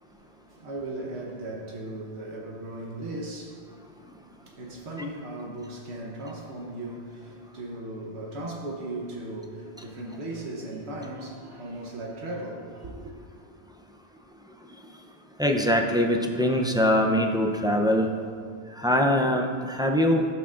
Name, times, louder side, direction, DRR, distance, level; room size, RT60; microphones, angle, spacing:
voice 1, 0.0-13.1, right 1 dB, 90° right, 1.3 m, -37 dB
voice 2, 15.4-18.1 18.8-20.3, equal, 5° right, 0.3 m, -23 dB
15.5 x 5.8 x 2.5 m
omnidirectional pair, 1.1 m